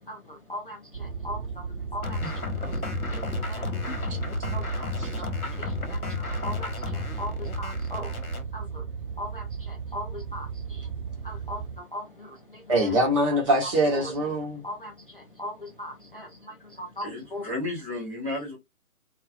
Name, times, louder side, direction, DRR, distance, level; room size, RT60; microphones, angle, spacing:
voice 1, 0.0-2.2 2.6-2.7 3.1-3.6 4.1-4.9 5.2-8.1 8.5-8.9 9.2-10.9 11.2-12.6 13.9-14.1 14.6-17.4, left 1 dB, 40° left, 0.4 m, -39 dB
sound 1, 0.9-11.8, right 6 dB, 45° right, 0.6 m, -35 dB
sound 2, 2.0-8.4, left 3 dB, 80° left, 1.0 m, -33 dB
voice 2, 12.7-14.6, right 1 dB, 25° right, 1.0 m, -23 dB
voice 3, 17.0-18.6, left 2 dB, ahead, 0.7 m, -33 dB
2.4 x 2.4 x 2.4 m
figure-of-eight pair, 140°, 42 cm